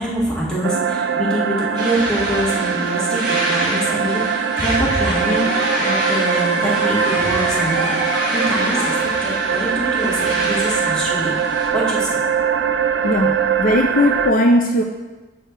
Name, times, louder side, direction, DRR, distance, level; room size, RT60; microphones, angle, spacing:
voice 1, 0.0-8.9 9.2-11.3 11.7-12.2, equal, 5° left, -7 dB, 1.8 m, -24 dB
sound 1, 0.6-14.3, right 6 dB, 90° right, 0.4 m, -21 dB
sound 2, 1.8-11.7, right 1 dB, 25° right, 1.8 m, -28 dB
sound 3, 3.1-4.0 5.1-9.0, left 1 dB, 90° left, 2.1 m, -28 dB
voice 2, 13.0-14.8, left 1 dB, 50° left, 3 dB, 0.5 m, -17 dB
7.6 x 4.8 x 4.6 m, 1.2 s
head